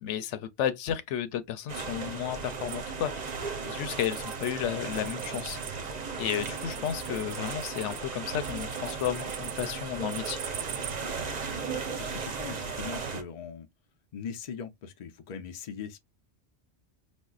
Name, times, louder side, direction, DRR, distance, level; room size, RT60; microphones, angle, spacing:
voice 1, 0.0-3.3 3.7-5.9 6.2-10.4, left 10 dB, 85° left, 0.9 m, -33 dB
sound 1, 1.7-13.2, right 5 dB, 45° right, 0.7 m, -36 dB
sound 2, 2.7-4.5 4.8-10.9, right 10 dB, 80° right, 0.9 m, -43 dB
voice 2, 11.7-13.7 14.1-16.0, left 6 dB, 45° left, 0.6 m, -40 dB
5.2 x 2.1 x 2.4 m
omnidirectional pair, 1.2 m